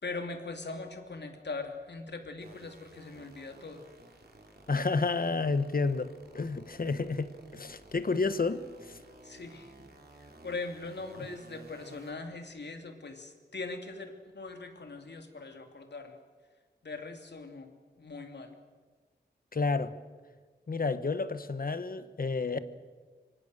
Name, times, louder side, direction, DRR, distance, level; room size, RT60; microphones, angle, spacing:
voice 1, 0.0-3.8 9.2-9.7 10.2-16.2 16.8-18.6, left 3 dB, 75° left, 2.9 m, -41 dB
sound 1, 2.4-12.1, right 2 dB, 60° right, 4.3 m, -54 dB
voice 2, 4.7-9.0 19.5-19.9 20.7-22.6, left 4 dB, 55° left, 1.3 m, -30 dB
25.5 x 24.5 x 6.7 m
wide cardioid pair, 95°, 18 cm